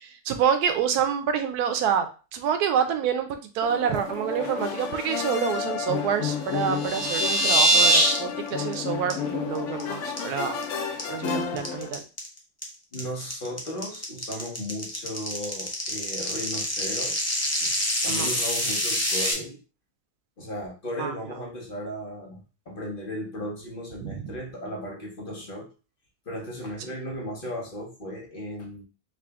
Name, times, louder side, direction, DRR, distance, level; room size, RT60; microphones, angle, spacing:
voice 1, 0.0-2.1 2.3-10.6 11.1-12.0 18.1-18.3 21.0-21.1 24.0-24.4, right 8 dB, 85° right, 8 dB, 1.1 m, -27 dB
sound 1, 3.6-11.9, left 6 dB, 65° left, 0.8 m, -31 dB
sound 2, 6.5-8.2 8.5-8.7 9.1-9.2 9.6-9.8 10.2-10.6 11.0-19.3, right 1 dB, 20° left, 0.4 m, -24 dB
voice 2, 12.9-17.3 17.6-17.7 18.0-19.6 20.4-25.7 26.2-28.8, equal, 40° left, -2 dB, 1.1 m, -36 dB
3.9 x 2.4 x 3.5 m, 0.33 s
omnidirectional pair, 1.6 m